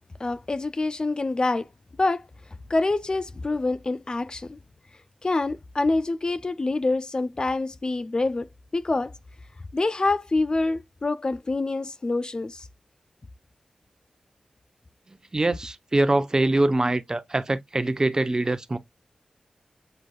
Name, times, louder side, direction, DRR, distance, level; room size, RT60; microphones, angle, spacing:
voice 1, 0.2-1.7 2.0-2.3 2.7-4.6 5.2-9.1 9.7-12.7, left 2 dB, 40° left, 0.3 m, -26 dB
voice 2, 15.3-18.8, right 2 dB, 30° right, 0.7 m, -23 dB
7.7 x 2.6 x 2.2 m
cardioid pair, 45°, 2 cm